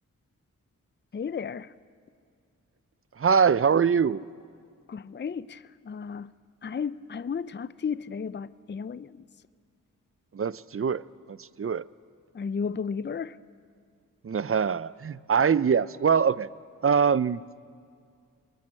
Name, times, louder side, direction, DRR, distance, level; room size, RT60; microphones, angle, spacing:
voice 1, 1.1-1.7 4.9-5.6 5.9-6.3 6.6-9.1 12.4-13.3, left 6 dB, 30° left, 0.6 m, -33 dB
voice 2, 3.2-4.2 10.3-11.0 11.3-11.8 14.2-16.5 16.8-17.4, right 6 dB, 40° right, 0.6 m, -23 dB
26.0 x 21.5 x 7.7 m
cardioid pair, 40°, 34 cm